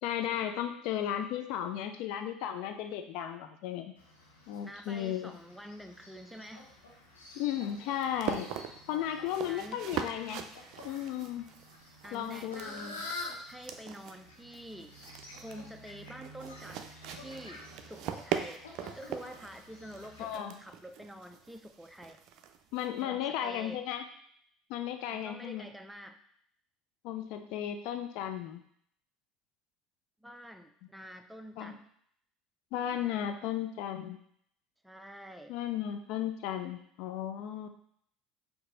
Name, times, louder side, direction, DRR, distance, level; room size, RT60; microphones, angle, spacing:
voice 1, 0.0-3.9 4.5-5.3 7.3-8.6 8.9-10.4 10.8-11.5 12.1-12.7 20.2-20.6 22.7-24.0 24.7-25.7 27.0-28.6 31.6-31.8 32.7-34.2 35.5-37.7, left 10 dB, 65° left, 7 dB, 0.4 m, -35 dB
Fowl, 4.0-20.3, left 2 dB, 90° left, 0.8 m, -49 dB
voice 2, 4.6-6.7 9.5-9.9 12.0-13.1 13.5-15.0 15.4-22.2 23.0-23.8 25.1-26.2 30.2-31.8 34.8-35.6, equal, 5° right, 7 dB, 0.5 m, -47 dB
sound 1, 6.7-23.0, right 9 dB, 60° right, 0.4 m, -42 dB
4.5 x 2.7 x 3.9 m, 0.67 s
hypercardioid pair, 70°, 0 cm